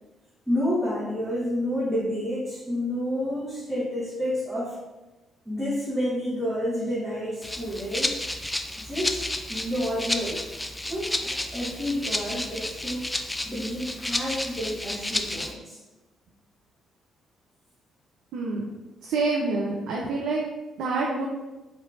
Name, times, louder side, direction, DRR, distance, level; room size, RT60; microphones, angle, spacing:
voice 1, 0.5-4.7 5.4-8.2 8.8-10.4 10.9-15.8, equal, 5° right, -10 dB, 1.4 m, -29 dB
Rattle (instrument), 7.4-15.5, left 1 dB, 15° left, 0.3 m, -31 dB
voice 2, 18.3-18.6 19.0-20.4 20.8-21.3, right 3 dB, 65° right, -2 dB, 0.4 m, -27 dB
4.6 x 2.8 x 2.5 m, 1.1 s
figure-of-eight pair, 40°, 0 cm